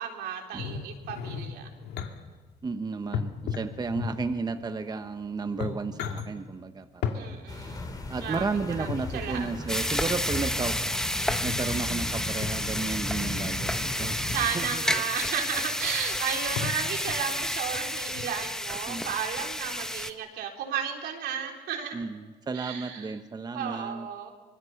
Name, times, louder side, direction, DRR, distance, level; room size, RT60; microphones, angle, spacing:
voice 1, 0.0-1.7 7.1-7.9 8.2-9.7 14.2-22.1 22.5-23.1 23.5-24.3, right 8 dB, 75° right, 2 dB, 3.8 m, -34 dB
sound 1, 0.6-2.1 3.1-4.4 5.1-5.2 5.5-6.3 7.0-7.2 8.7-9.2 11.3-11.8 12.4-12.8 13.8-14.4 15.1-15.2 15.5-15.6 15.8-16.2 16.6-17.4 18.1-18.2, left 7 dB, 75° left, 2.3 m, -35 dB
voice 2, 2.6-7.4 8.1-10.8 11.4-15.0 18.9-19.1 21.9-24.1, right 4 dB, 25° right, 8 dB, 1.1 m, -33 dB
sound 2, 7.5-14.5, left 2 dB, 20° left, 2.9 m, -36 dB
sound 3, 9.7-20.1, left 1 dB, 5° left, 1.2 m, -31 dB
25.0 x 20.5 x 7.2 m, 1.3 s
cardioid pair, 110°, 17 cm